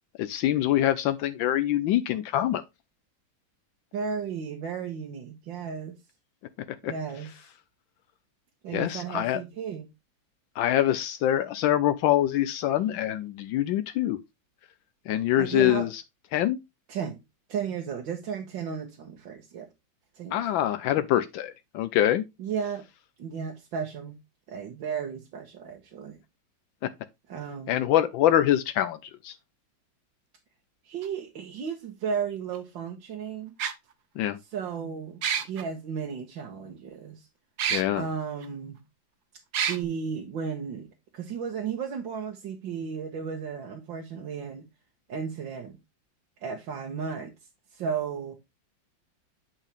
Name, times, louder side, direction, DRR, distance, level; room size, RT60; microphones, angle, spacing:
voice 1, 0.2-2.6 6.8-6.9 8.7-9.4 10.6-14.2 15.1-16.0 16.3-16.6 20.3-22.2 27.7-29.0 29.2-29.3 34.2-34.4 37.7-38.1, left 12 dB, 80° left, 1.3 m, -24 dB
voice 2, 3.9-5.9 6.9-7.3 8.6-9.9 15.4-15.9 16.9-17.2 17.5-19.7 20.2-20.4 22.4-22.8 23.2-24.2 24.5-26.2 27.3-27.8 30.9-33.5 34.5-37.3 37.9-38.8 39.7-44.6 45.1-45.8 46.4-47.3 47.7-48.3, right 6 dB, 75° right, 1.9 m, -34 dB
sound 1, 31.0-31.1 32.5-32.6 33.6-33.7 35.2-35.6 37.6-37.8 38.4-38.5 39.5-39.8, right 8 dB, 60° right, 1.4 m, -27 dB
9.1 x 5.4 x 3.4 m
omnidirectional pair, 2.1 m